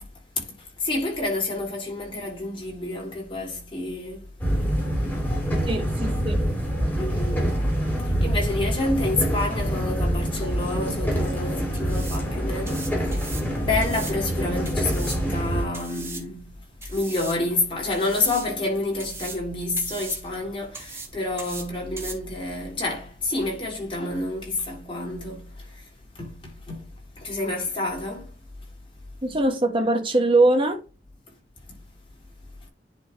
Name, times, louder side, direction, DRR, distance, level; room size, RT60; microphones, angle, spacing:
voice 1, 0.8-4.2 7.0-7.6 8.2-13.3 13.6-16.4 16.9-25.4 26.2-26.3 26.7-26.8 27.2-28.3, left 2 dB, 30° left, 3.7 m, -28 dB
sound 1, 4.4-15.7, equal, 10° left, 2.6 m, -25 dB
voice 2, 5.7-6.4 29.2-30.8, right 2 dB, 30° right, 1.4 m, -22 dB
sound 2, 11.7-24.3, right 3 dB, 15° right, 1.4 m, -41 dB
10.5 x 3.6 x 3.2 m
head